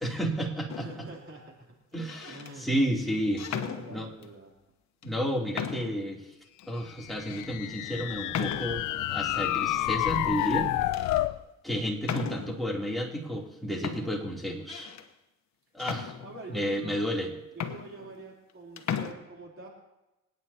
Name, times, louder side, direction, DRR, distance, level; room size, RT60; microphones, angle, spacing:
voice 1, 0.0-0.9 1.9-3.4 3.9-4.1 5.0-6.3 6.7-10.7 11.6-14.9 15.7-16.1 16.5-17.3, equal, ahead, -3 dB, 3.1 m, -31 dB
sound 1, 0.7-1.1 1.9-2.5 3.4-4.3 5.0-5.1 5.5-6.1 6.6-6.7 7.3-7.5 8.3-9.0 10.1-10.6 10.9-11.2 12.0-12.7 13.4-13.5 13.8-15.1 15.8-16.6 17.2-17.3 17.5-18.5 18.8-19.1, left 8 dB, 65° left, 1.2 m, -37 dB
voice 2, 0.8-1.7 2.2-2.8 3.5-4.5 16.2-17.2 17.5-19.7, right 3 dB, 45° right, -2 dB, 3.5 m, -45 dB
sound 2, 7.0-11.4, left 14 dB, 85° left, 0.6 m, -29 dB
27.0 x 9.5 x 2.9 m, 1.0 s
cardioid pair, 90°, 30 cm